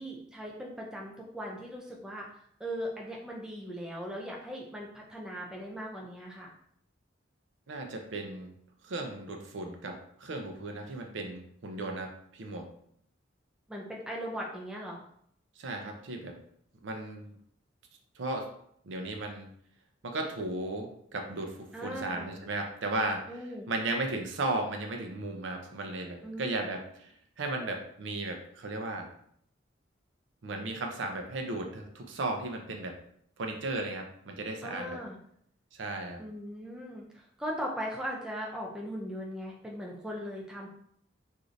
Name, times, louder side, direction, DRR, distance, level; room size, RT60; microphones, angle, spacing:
voice 1, 0.0-2.3 2.6-6.5 13.7-15.0 21.7-22.3 23.3-23.7 26.2-26.4 34.6-35.2 36.2-40.7, equal, 5° right, -2 dB, 0.3 m, -39 dB
voice 2, 7.7-8.5 8.8-12.7 15.6-16.4 16.8-17.3 18.2-18.5 18.8-19.5 20.0-29.1 30.4-33.0 33.4-35.0 35.7-36.2, right 2 dB, 70° right, 3 dB, 0.5 m, -35 dB
3.1 x 2.5 x 2.5 m, 0.67 s
head